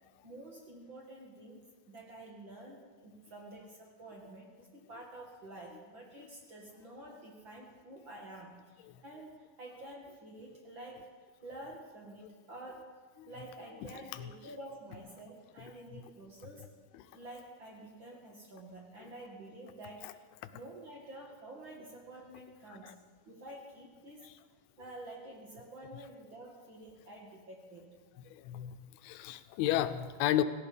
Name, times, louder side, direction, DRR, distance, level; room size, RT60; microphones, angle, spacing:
voice 1, 0.2-11.1 11.4-13.0 13.3-16.7 17.1-20.2 20.5-22.9 23.3-24.3 24.8-27.9, right 1 dB, 45° right, 0 dB, 1.8 m, -49 dB
voice 2, 28.3-30.4, left 12 dB, 85° left, 11 dB, 2.6 m, -32 dB
17.0 x 16.0 x 5.1 m, 1.5 s
omnidirectional pair, 4.4 m